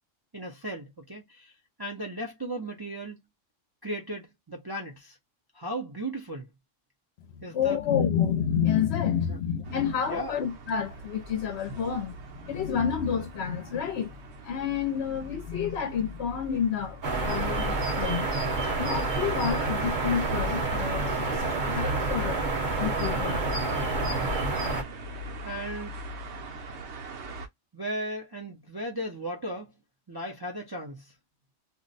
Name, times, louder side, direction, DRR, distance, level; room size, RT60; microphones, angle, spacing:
voice 1, 0.3-1.5 1.8-3.2 3.8-5.2 5.6-6.5 7.4-7.8 10.1-10.4 25.4-26.0 27.7-29.7 30.1-31.0, right 1 dB, 30° right, 0.5 m, -36 dB
voice 2, 7.3-14.1 14.4-18.3 18.8-22.5 22.8-23.6, left 8 dB, 65° left, 0.8 m, -29 dB
sound 1, 9.6-27.5, right 1 dB, 65° right, 0.9 m, -41 dB
sound 2, 17.0-24.8, right 3 dB, 45° right, 0.9 m, -28 dB
2.5 x 2.1 x 3.8 m
omnidirectional pair, 1.3 m